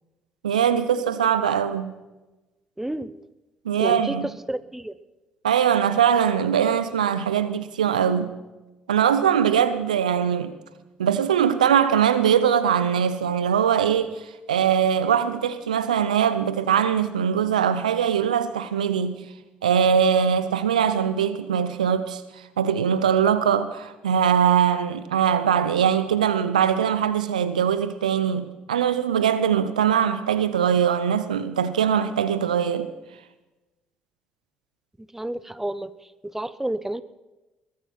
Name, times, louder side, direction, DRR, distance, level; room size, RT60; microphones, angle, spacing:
voice 1, 0.4-1.9 3.6-4.3 5.4-8.3 8.9-10.5 11.0-14.2 14.5-19.2 19.6-22.2 22.6-32.9, right 8 dB, 90° right, 0.6 m, -21 dB
voice 2, 2.8-3.2 3.8-4.2 4.5-5.0 35.1-35.9 36.2-37.0, right 1 dB, 10° right, 0.8 m, -30 dB
21.5 x 8.8 x 5.8 m
hypercardioid pair, 50°, 4 cm